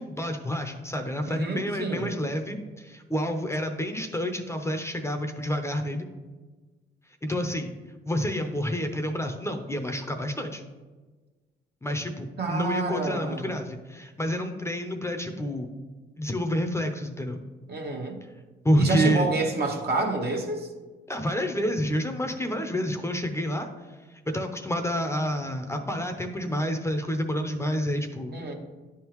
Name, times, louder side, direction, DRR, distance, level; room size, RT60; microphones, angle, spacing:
voice 1, 0.0-6.1 7.2-7.7 8.1-10.6 11.8-15.7 16.2-17.4 18.6-19.3 21.1-23.7 24.3-28.4, equal, 15° left, 5 dB, 0.7 m, -28 dB
voice 2, 1.3-2.1 12.4-13.5 17.7-18.2 18.8-20.7 28.3-28.5, right 3 dB, 55° right, 1 dB, 1.2 m, -28 dB
10.5 x 3.6 x 3.1 m, 1.3 s
supercardioid pair, 65°, 20 cm